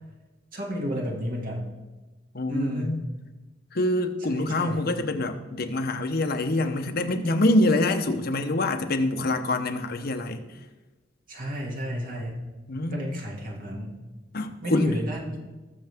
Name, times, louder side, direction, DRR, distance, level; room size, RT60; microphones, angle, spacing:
voice 1, 0.5-1.6 2.5-3.0 4.3-4.8 11.3-12.4 12.9-14.0 14.6-15.4, equal, 50° right, -1 dB, 2.3 m, -32 dB
voice 2, 2.3-3.0 3.7-10.4 12.7-13.1 14.3-14.9, left 1 dB, 55° left, 6 dB, 0.9 m, -25 dB
19.5 x 6.7 x 3.6 m, 1.2 s
head